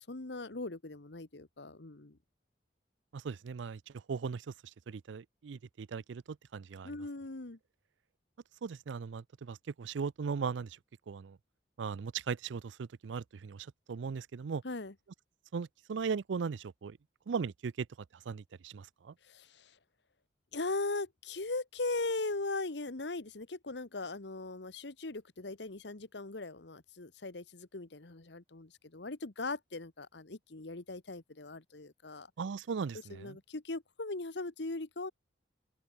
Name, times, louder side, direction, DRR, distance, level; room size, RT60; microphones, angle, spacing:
voice 1, 0.0-2.2 6.8-7.6 14.6-14.9 19.3-19.7 20.5-32.3 33.1-35.1, left 3 dB, 70° left, 1.3 m, -39 dB
voice 2, 3.1-3.8 4.1-4.5 4.9-6.9 8.6-10.8 11.1-11.4 11.8-14.6 15.5-17.0 17.3-17.9 18.3-19.1 32.4-33.4, right 5 dB, 85° right, 0.4 m, -38 dB
open air
head